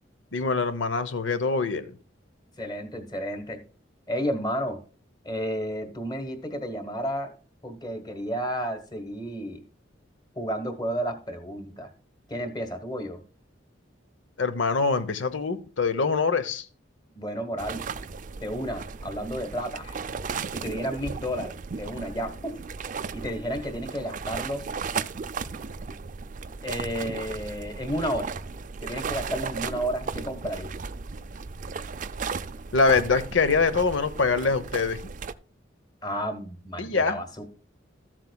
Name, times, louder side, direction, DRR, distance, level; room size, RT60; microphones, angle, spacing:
voice 1, 0.3-1.9 14.4-16.7 32.7-35.0 36.8-37.2, left 4 dB, 75° left, 0.9 m, -24 dB
voice 2, 2.6-3.6 4.1-4.8 5.2-7.3 7.6-9.6 10.3-11.9 12.3-13.2 17.1-17.8 18.4-20.0 20.5-22.6 23.1-24.7 26.6-28.3 28.8-30.7 36.0-37.4, equal, 20° left, 1.4 m, -32 dB
sound 1, 17.6-35.3, right 5 dB, 40° right, 0.4 m, -35 dB
13.5 x 7.5 x 2.3 m
head